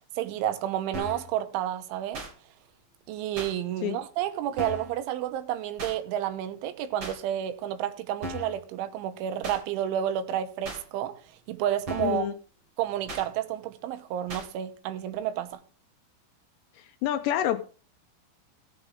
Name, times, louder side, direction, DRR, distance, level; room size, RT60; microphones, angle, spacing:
voice 1, 0.2-2.2 3.1-11.2 11.5-12.3 12.8-15.6, right 11 dB, 90° right, 3.3 m, -30 dB
sound 1, 0.9-1.3 2.1-2.3 3.4-3.5 4.6-4.9 5.8-6.0 7.0-7.2 8.2-8.6 9.4-9.6 10.6-10.8 11.9-12.2 13.1-13.3 14.3-14.5, equal, 45° right, 1.7 m, -37 dB
voice 2, 12.0-12.3 16.8-17.6, left 11 dB, 80° left, 2.5 m, -28 dB
16.5 x 7.3 x 3.5 m
omnidirectional pair, 5.4 m